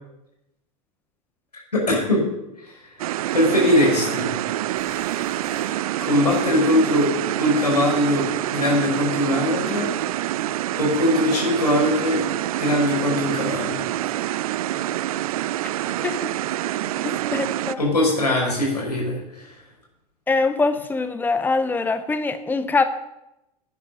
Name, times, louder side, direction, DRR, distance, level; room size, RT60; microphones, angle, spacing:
voice 1, 1.7-2.2 2.6-2.7 3.3-4.3 6.0-9.9 10.8-12.2 12.5-13.8 17.8-19.5, left 1 dB, 90° left, -1 dB, 5.9 m, -21 dB
sound 1, 3.0-17.7, right 13 dB, 65° right, 0.5 m, -26 dB
sound 2, 4.8-5.9 6.3-6.7, right 6 dB, 40° right, 4.2 m, -41 dB
voice 2, 17.0-17.8 20.3-22.8, left 3 dB, 10° left, 11 dB, 0.8 m, -23 dB
11.5 x 9.6 x 6.5 m, 0.89 s
figure-of-eight pair, 85°, 20 cm